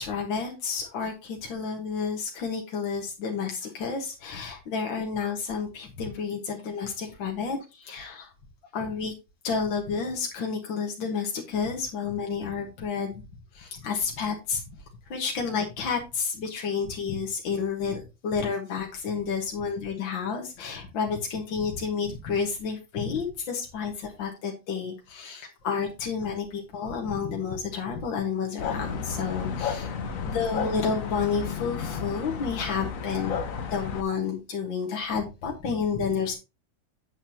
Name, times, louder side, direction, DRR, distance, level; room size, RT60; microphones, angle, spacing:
voice 1, 0.0-8.3 8.7-9.1 9.4-13.2 13.5-14.8 15.1-33.4 33.7-36.3, left 5 dB, 75° left, 0 dB, 2.1 m, -30 dB
sound 1, 28.6-34.0, left 6 dB, 50° left, 1.2 m, -32 dB
8.8 x 8.0 x 2.8 m, 0.27 s
omnidirectional pair, 2.1 m